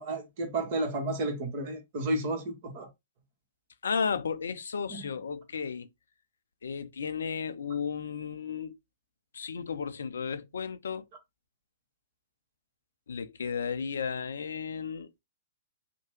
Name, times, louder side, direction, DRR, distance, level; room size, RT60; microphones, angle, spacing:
voice 1, 0.0-2.9 4.9-5.0, right 2 dB, 40° right, 1.1 m, -32 dB
voice 2, 3.8-5.9 6.6-8.8 9.3-11.0 13.1-15.1, left 6 dB, 65° left, 0.4 m, -34 dB
2.8 x 2.1 x 3.1 m
figure-of-eight pair, 110°, 0 cm